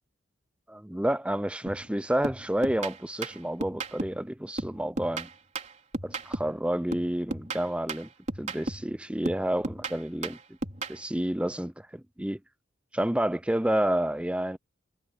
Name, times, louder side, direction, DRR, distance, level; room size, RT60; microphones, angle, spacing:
voice 1, 0.7-5.3 6.0-8.1 8.4-10.4 10.9-12.4 12.9-14.6, right 1 dB, 5° right, 0.5 m, -29 dB
sound 1, 1.7-1.9 2.2-4.3 4.6-6.6 6.9-9.0 9.3-11.0, right 2 dB, 35° right, 4.3 m, -35 dB
head